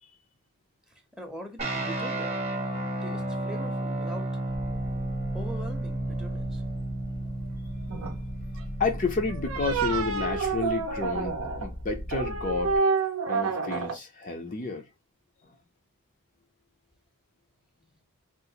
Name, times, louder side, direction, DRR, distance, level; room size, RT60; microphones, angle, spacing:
voice 1, 0.9-2.4 3.0-4.4 5.3-6.6 17.8-18.0, equal, 5° right, 0.6 m, -43 dB
sound 1, 1.6-10.5, right 1 dB, 30° right, 0.9 m, -33 dB
sound 2, 4.5-12.8, equal, 90° left, 1.2 m, -39 dB
sound 3, 7.9-8.2 9.3-11.7 12.1-14.0, right 4 dB, 65° right, 0.5 m, -29 dB
voice 2, 8.8-12.7 13.3-14.8, left 4 dB, 35° left, 0.5 m, -30 dB
3.6 x 2.5 x 2.8 m
head